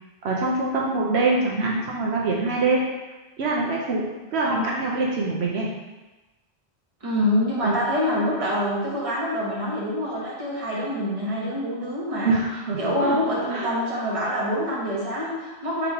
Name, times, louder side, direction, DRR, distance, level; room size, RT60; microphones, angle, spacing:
voice 1, 0.2-2.9 3.4-4.1 4.3-5.7 7.6-7.8 12.2-13.2 13.5-14.1, right 3 dB, 80° right, -3 dB, 0.9 m, -24 dB
voice 2, 7.0-12.3 12.8-15.9, left 1 dB, 30° right, -6 dB, 1.2 m, -26 dB
3.7 x 3.0 x 4.7 m, 1.1 s
omnidirectional pair, 1.1 m